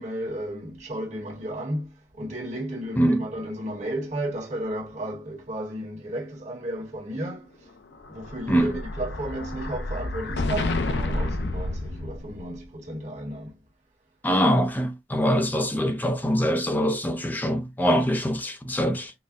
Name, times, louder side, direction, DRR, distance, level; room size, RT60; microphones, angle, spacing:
voice 1, 0.0-7.7 8.1-13.5, right 1 dB, 40° right, 1.2 m, -33 dB
Explosion, 7.9-12.6, left 2 dB, 75° left, 0.5 m, -30 dB
voice 2, 14.2-19.1, equal, 10° left, 0.5 m, -23 dB
4.0 x 2.1 x 2.5 m
head